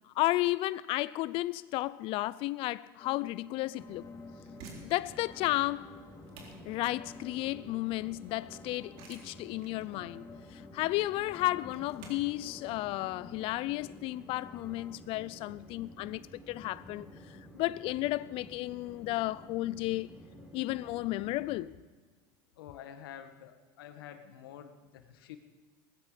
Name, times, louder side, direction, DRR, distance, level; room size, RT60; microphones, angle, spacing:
voice 1, 0.1-4.0 4.8-5.9 6.7-17.1 17.5-20.1 20.5-21.7, left 18 dB, 50° left, 0.4 m, -33 dB
sound 1, 3.0-15.0, left 4 dB, 25° left, 1.2 m, -53 dB
Train, 3.8-21.6, equal, 5° right, 5.2 m, -52 dB
sound 2, 4.4-15.0, right 3 dB, 65° right, 4.1 m, -55 dB
voice 2, 22.6-25.4, left 10 dB, 80° left, 1.5 m, -48 dB
18.5 x 14.5 x 5.1 m
supercardioid pair, 105°, 12 cm